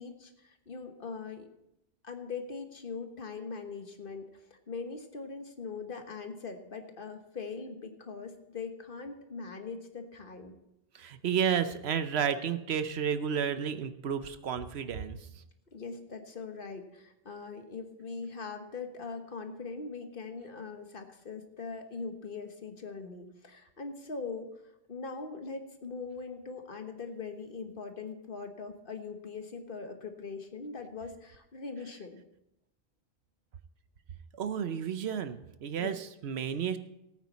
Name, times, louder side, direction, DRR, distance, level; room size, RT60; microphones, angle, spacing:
voice 1, 0.0-1.5 2.0-10.5 15.7-24.6 24.9-32.2 35.8-36.0, left 4 dB, 60° left, 5 dB, 1.5 m, -41 dB
voice 2, 10.9-15.4 34.3-36.8, right 8 dB, 85° right, 11 dB, 1.0 m, -32 dB
18.0 x 8.8 x 4.1 m, 0.87 s
omnidirectional pair, 1.1 m